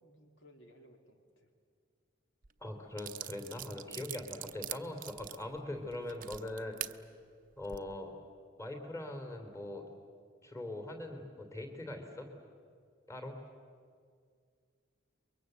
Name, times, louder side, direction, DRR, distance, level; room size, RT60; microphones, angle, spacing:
voice 1, 0.0-1.5 6.8-7.0 7.7-7.9, equal, 70° left, 4 dB, 2.8 m, -60 dB
sound 1, 2.4-2.5 3.0-6.9 7.5-7.8, right 12 dB, 45° right, 0.7 m, -43 dB
voice 2, 2.6-7.0 7.6-8.1 8.6-9.8 10.4-12.3 13.1-13.4, left 1 dB, 15° left, 5 dB, 3.3 m, -42 dB
30.0 x 23.0 x 8.1 m, 2.1 s
head